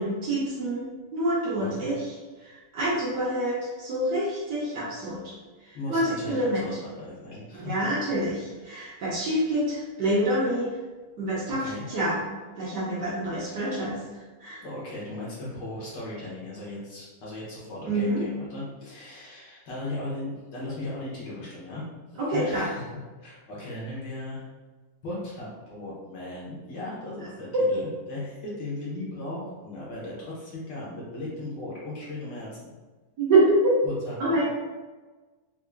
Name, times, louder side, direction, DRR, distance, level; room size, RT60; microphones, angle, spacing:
voice 1, 0.0-5.3 5.6-6.7 7.5-10.8 11.2-12.2 12.6-14.6 17.8-18.2 22.2-22.7 27.2-27.3 27.5-27.6 33.2-33.8 34.2-34.4, right 1 dB, 65° right, -6 dB, 1.3 m, -27 dB
voice 2, 1.6-1.9 5.7-7.9 11.5-11.8 14.6-21.8 22.1-22.8 23.2-24.4 25.0-32.8 33.8-34.4, left 2 dB, 65° left, -6 dB, 1.5 m, -37 dB
4.4 x 2.6 x 2.4 m, 1.3 s
omnidirectional pair, 2.2 m